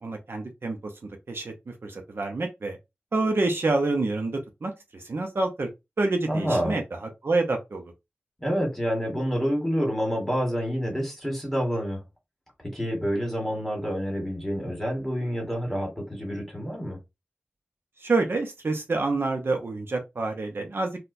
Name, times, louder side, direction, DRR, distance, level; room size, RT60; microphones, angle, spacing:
voice 1, 0.0-0.9 1.3-2.8 3.1-5.7 6.0-7.8 18.0-21.0, right 3 dB, 60° right, 0.7 m, -27 dB
voice 2, 6.3-6.8 8.4-12.0 12.7-17.0, equal, 5° left, 1.6 m, -28 dB
4.1 x 2.2 x 2.6 m
wide cardioid pair, 75°, 4 cm